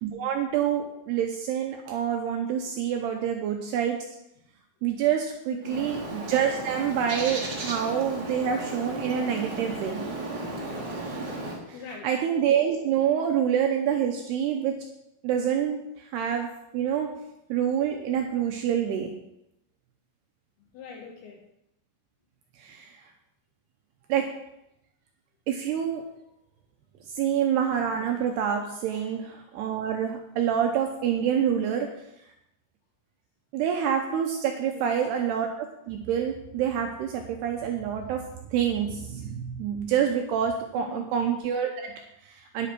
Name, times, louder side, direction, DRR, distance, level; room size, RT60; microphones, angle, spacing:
voice 1, 0.0-4.0 4.8-10.0 12.0-14.9 15.2-16.5 16.7-17.1 17.5-19.1 22.6-23.0 24.1-24.3 25.5-26.0 27.1-31.9 33.5-42.7, right 8 dB, 80° right, 3 dB, 2.5 m, -27 dB
voice 2, 5.5-5.9 11.7-12.1 20.6-21.4 28.9-29.1 34.7-35.0 40.7-41.1, left 5 dB, 75° left, 2 dB, 2.5 m, -42 dB
Bird, 5.6-11.6, right 2 dB, 55° right, 1.2 m, -34 dB
9.9 x 8.2 x 5.9 m, 0.83 s
omnidirectional pair, 5.6 m